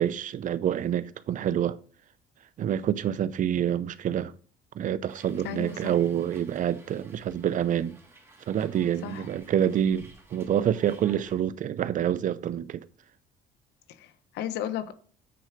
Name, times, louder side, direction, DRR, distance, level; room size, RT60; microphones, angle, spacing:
voice 1, 0.0-1.8 2.6-4.3 4.7-8.0 8.5-12.9, right 10 dB, 50° right, 0.6 m, -27 dB
Hiss, 5.1-11.4, right 2 dB, 15° right, 2.8 m, -55 dB
voice 2, 5.4-5.9 9.0-9.3 13.9-14.9, left 10 dB, 85° left, 1.1 m, -34 dB
9.4 x 4.4 x 5.1 m
cardioid pair, 110°, 17 cm